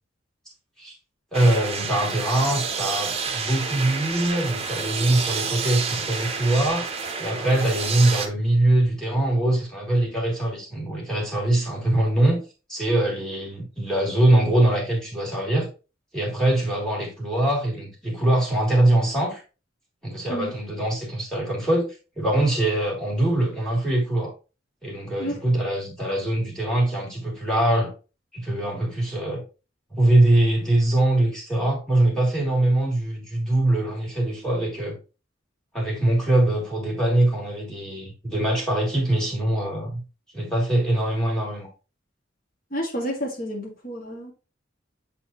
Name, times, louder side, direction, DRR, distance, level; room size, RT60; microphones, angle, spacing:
voice 1, 1.3-6.9 7.2-12.4 12.7-15.7 16.1-19.4 20.0-24.3 24.8-27.9 28.3-29.4 29.9-35.0 35.7-40.0 40.3-41.7, right 1 dB, 5° left, 2.6 m, -23 dB
sound 1, 1.3-8.3, right 5 dB, 30° right, 0.8 m, -29 dB
voice 2, 42.7-44.3, equal, 50° left, 1.8 m, -30 dB
7.6 x 4.4 x 2.9 m
head